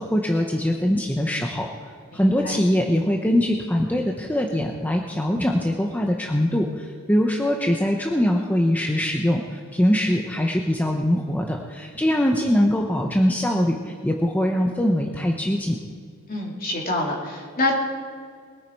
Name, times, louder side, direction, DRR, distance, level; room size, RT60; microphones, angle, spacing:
voice 1, 0.0-1.7 2.1-15.8, equal, 10° left, 1 dB, 0.8 m, -22 dB
voice 2, 2.1-2.6 16.3-17.8, left 2 dB, 45° left, -2 dB, 3.1 m, -26 dB
21.5 x 9.4 x 4.7 m, 2.1 s
head